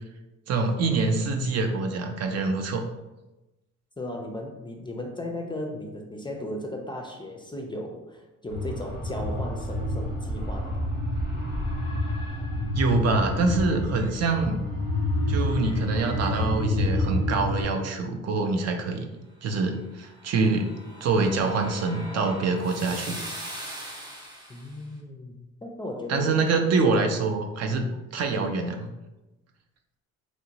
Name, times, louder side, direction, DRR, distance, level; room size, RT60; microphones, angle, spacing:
voice 1, 0.5-2.8 12.7-14.6 15.3-23.2 26.1-28.9, right 3 dB, 60° right, 4 dB, 0.5 m, -25 dB
voice 2, 4.0-10.8 24.5-26.5 26.9-27.0, left 1 dB, 15° left, 2 dB, 0.4 m, -36 dB
sound 1, 8.5-17.6, left 1 dB, 75° right, 1.4 m, -28 dB
sound 2, 20.1-24.7, equal, 15° right, 0.7 m, -40 dB
3.0 x 2.5 x 2.8 m, 1.0 s
cardioid pair, 90°, 30 cm